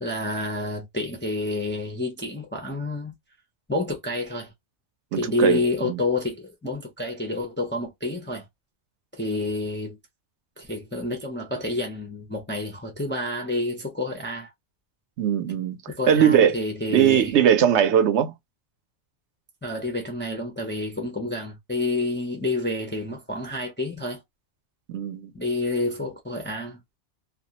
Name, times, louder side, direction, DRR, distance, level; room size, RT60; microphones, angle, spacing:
voice 1, 0.0-3.1 3.7-4.5 5.1-8.5 9.1-10.0 10.6-14.5 15.9-17.3 19.6-24.2 25.3-26.8, left 2 dB, 20° left, 0.3 m, -29 dB
voice 2, 5.1-6.0 15.2-15.8 16.1-16.6 16.9-18.3 24.9-25.3, right 9 dB, 80° right, 0.9 m, -20 dB
2.3 x 2.2 x 2.7 m
omnidirectional pair, 1.2 m